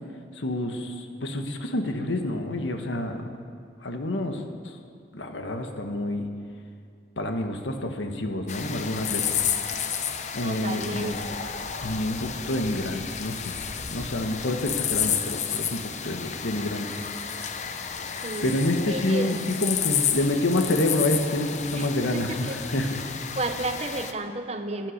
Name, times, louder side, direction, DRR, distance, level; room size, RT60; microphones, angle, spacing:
voice 1, 0.4-3.3 3.8-4.4 5.1-6.3 7.2-9.4 10.3-11.2 11.8-13.5 13.9-17.0 18.4-23.4, left 1 dB, 90° left, 5 dB, 1.3 m, -28 dB
sound 1, 8.5-24.1, left 8 dB, 40° left, 0.7 m, -31 dB
voice 2, 10.4-11.4 18.2-18.6 18.9-19.3 21.7-22.6 23.4-24.9, right 2 dB, 35° right, 7 dB, 0.9 m, -32 dB
15.0 x 11.0 x 6.5 m, 2.2 s
head